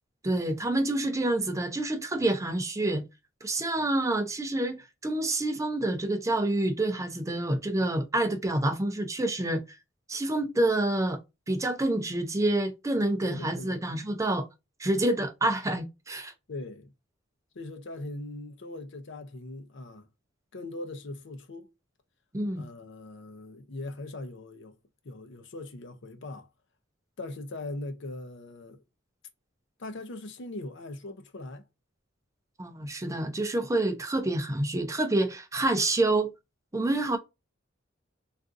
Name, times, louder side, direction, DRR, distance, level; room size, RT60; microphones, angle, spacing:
voice 1, 0.2-3.0 3.4-9.8 10.1-11.2 11.5-14.5 14.8-16.3 22.3-22.6 32.6-36.3 36.7-37.2, right 2 dB, 15° right, 0.5 m, -27 dB
voice 2, 13.2-13.9 16.5-16.9 17.5-20.1 20.5-21.7 22.6-24.8 25.0-26.5 27.2-28.8 29.8-31.6, left 2 dB, 65° left, 0.6 m, -40 dB
3.5 x 2.5 x 2.5 m
head